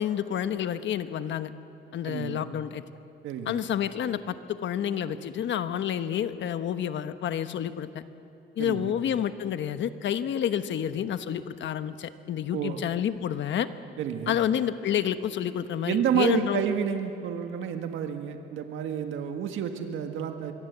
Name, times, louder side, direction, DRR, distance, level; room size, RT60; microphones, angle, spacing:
voice 1, 0.0-1.5 1.9-2.8 3.5-7.9 8.6-13.7 14.3-16.6, left 9 dB, 70° left, 10 dB, 1.2 m, -29 dB
voice 2, 2.0-2.5 3.2-3.6 8.6-9.0 12.5-12.8 14.0-14.4 15.9-20.5, right 8 dB, 85° right, 5 dB, 1.6 m, -30 dB
25.5 x 22.0 x 8.1 m, 2.7 s
cardioid pair, 90°, 20 cm